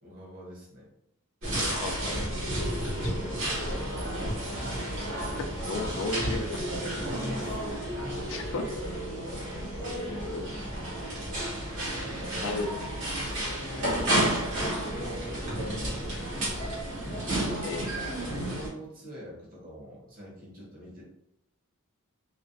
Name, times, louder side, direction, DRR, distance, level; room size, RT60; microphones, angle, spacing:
voice 1, 0.0-0.9 2.9-4.3 6.9-7.8 10.0-10.3 11.9-12.6 13.0-14.1 14.8-17.0 18.2-21.0, equal, 40° right, -4 dB, 0.9 m, -45 dB
sound 1, 1.4-16.9, equal, 15° right, 0.4 m, -45 dB
sound 2, 1.4-18.7, right 1 dB, 60° right, 1.0 m, -32 dB
voice 2, 1.6-2.3 5.4-6.5 8.3-8.7 9.8-10.5 12.4-12.7 17.6-17.9, left 3 dB, 65° left, 5 dB, 0.3 m, -34 dB
2.4 x 2.1 x 2.5 m, 0.81 s
head